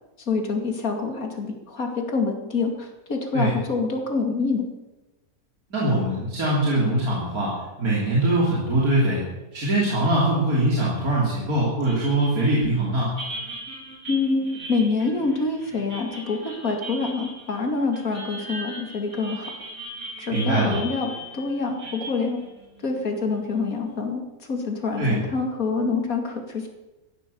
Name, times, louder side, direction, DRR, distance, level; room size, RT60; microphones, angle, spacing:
voice 1, 0.2-4.7 14.1-19.5 20.2-22.4 22.8-26.7, left 4 dB, 70° left, 4 dB, 2.8 m, -26 dB
voice 2, 5.7-9.2 9.5-13.1 20.3-20.7 25.0-25.2, right 1 dB, 80° right, -5 dB, 3.9 m, -22 dB
sound 1, 11.8-23.6, right 1 dB, 55° right, 7.1 m, -39 dB
15.5 x 11.5 x 7.0 m, 1.1 s
omnidirectional pair, 1.5 m